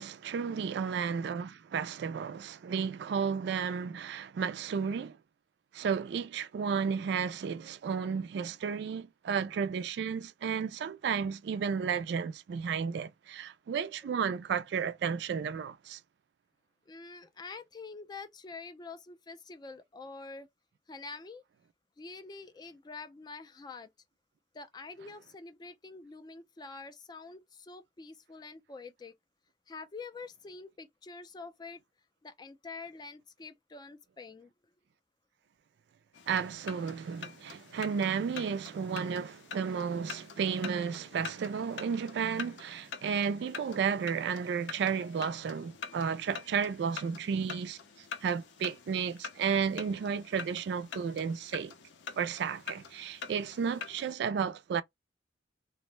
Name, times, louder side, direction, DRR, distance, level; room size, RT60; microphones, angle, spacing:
voice 1, 0.0-5.2 5.7-16.0 36.3-47.8 48.2-51.7 52.2-54.8, right 6 dB, 65° right, 0.3 m, -33 dB
voice 2, 16.9-20.5 20.9-21.4 22.0-23.9 24.5-29.1 29.7-31.8 32.2-34.5, left 4 dB, 25° left, 0.3 m, -46 dB
sound 1, 36.1-54.1, left 6 dB, 75° left, 0.5 m, -46 dB
2.5 x 2.0 x 3.0 m
head